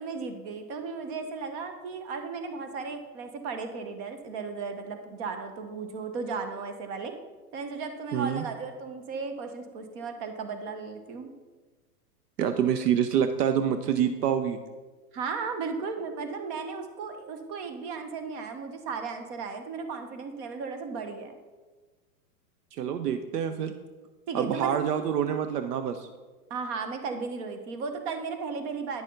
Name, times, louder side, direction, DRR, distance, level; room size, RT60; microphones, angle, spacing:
voice 1, 0.0-7.1 7.5-11.3 15.1-21.3 24.3-24.8 26.5-29.0, right 5 dB, 45° right, 7 dB, 1.2 m, -35 dB
voice 2, 8.1-8.4 12.4-14.6 22.7-23.7 24.3-26.1, right 8 dB, 80° right, 9 dB, 0.7 m, -26 dB
9.9 x 6.4 x 3.8 m, 1.3 s
hypercardioid pair, 125°, 47 cm